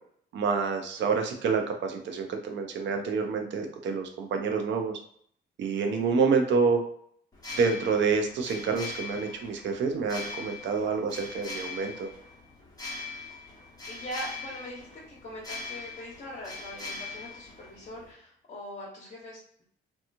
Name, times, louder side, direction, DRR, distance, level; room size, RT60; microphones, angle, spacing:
voice 1, 0.3-5.0 5.6-6.8 7.5-12.1, right 5 dB, 70° right, 4 dB, 0.6 m, -27 dB
sound 1, 7.3-18.1, left 3 dB, 20° left, 0.9 m, -41 dB
voice 2, 13.9-19.6, equal, 45° left, -6 dB, 0.9 m, -42 dB
2.8 x 2.3 x 2.5 m, 0.65 s
cardioid pair, 90°, 20 cm